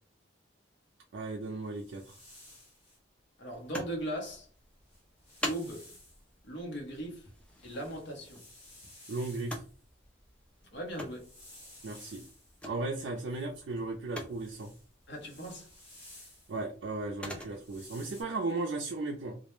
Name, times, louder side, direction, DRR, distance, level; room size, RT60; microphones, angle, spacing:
voice 1, 1.1-2.1 9.1-9.6 11.8-12.2 12.6-14.7 16.5-19.4, right 3 dB, 60° right, 0.4 m, -36 dB
sound 1, 1.4-3.0 4.4-4.5 4.8-6.2 6.8-9.8 10.7-12.7 13.3-16.7 17.4-18.2, left 1 dB, 35° left, 1.2 m, -55 dB
voice 2, 3.4-4.5 5.5-5.9 6.4-7.3 7.6-8.4 10.7-11.3 15.1-15.7, right 1 dB, 60° left, 0.8 m, -38 dB
sound 2, 3.5-18.4, left 1 dB, 5° left, 0.4 m, -47 dB
2.2 x 2.1 x 3.0 m
head